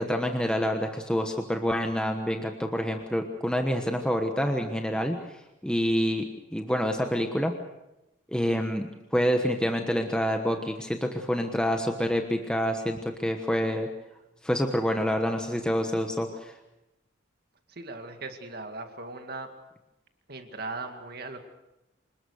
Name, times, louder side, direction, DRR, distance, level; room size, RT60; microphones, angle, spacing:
voice 1, 0.0-6.2 6.5-7.5 8.3-13.9 14.4-16.5, equal, 5° left, 4 dB, 1.2 m, -27 dB
voice 2, 17.7-19.5 20.3-21.4, right 3 dB, 50° right, 6 dB, 2.2 m, -38 dB
27.0 x 20.0 x 6.6 m, 0.93 s
head